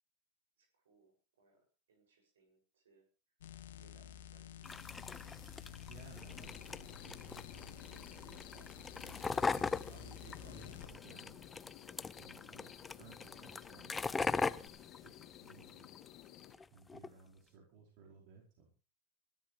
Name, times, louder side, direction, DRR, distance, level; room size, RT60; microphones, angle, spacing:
voice 1, 0.6-3.4 3.7-4.8 15.0-15.3, right 3 dB, 85° right, 4 dB, 7.1 m, -71 dB
sound 1, 3.4-10.9 14.6-14.7, left 9 dB, 80° left, 1.8 m, -52 dB
sound 2, 4.6-16.1 16.4-17.1, left 4 dB, 15° left, 0.6 m, -41 dB
voice 2, 5.9-11.4 12.1-15.1 15.4-15.9 16.7-18.7, right 5 dB, 60° right, -2 dB, 4.8 m, -59 dB
sound 3, 6.3-16.6, left 13 dB, 50° left, 2.1 m, -55 dB
21.0 x 13.5 x 3.4 m, 0.34 s
hypercardioid pair, 100°, 0 cm